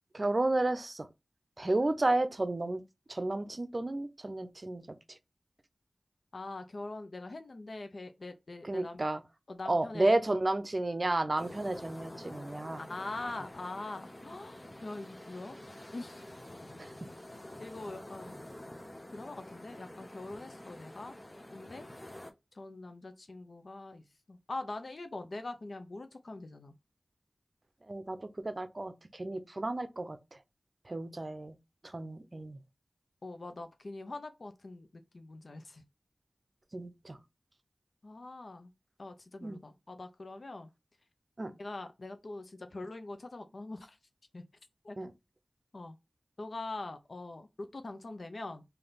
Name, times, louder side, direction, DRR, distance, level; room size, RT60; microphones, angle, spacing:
voice 1, 0.1-1.1 1.6-2.8 3.1-4.8 5.1-5.2 8.6-9.2 9.7-12.8 16.8-16.9 27.9-30.2 30.9-31.6 31.8-32.6 36.7-37.2 39.4-39.6 41.4-41.5 45.0-45.1, right 2 dB, 50° right, 0.6 m, -32 dB
voice 2, 6.3-9.0 9.5-10.1 12.8-15.6 15.9-16.3 17.6-18.4 19.1-21.1 21.5-21.9 22.5-26.7 33.2-35.8 38.0-38.7 39.0-40.7 41.6-44.0 44.3-44.4 44.8-45.0 45.7-46.0 46.4-48.6, left 2 dB, 70° left, 0.6 m, -43 dB
sound 1, 11.4-22.3, left 1 dB, 35° left, 0.7 m, -48 dB
3.3 x 2.7 x 3.9 m
cardioid pair, 40°, 0 cm